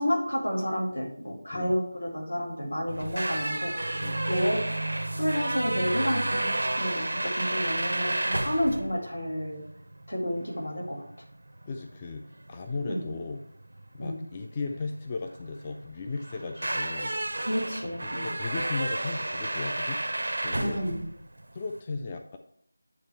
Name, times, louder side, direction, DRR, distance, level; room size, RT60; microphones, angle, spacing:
voice 1, 0.0-4.6 5.2-9.6 10.1-11.0 12.9-13.0 14.0-14.2 17.4-18.3 20.6-21.0, equal, 75° left, -1 dB, 2.2 m, -30 dB
sound 1, 2.9-21.8, right 1 dB, 65° right, 0.5 m, -32 dB
voice 2, 11.7-12.2 12.5-13.4 13.9-17.1 17.8-20.0 20.4-20.8 21.5-22.4, left 3 dB, 20° left, 4 dB, 0.3 m, -36 dB
8.8 x 3.3 x 4.3 m, 0.67 s
figure-of-eight pair, 165°, 0 cm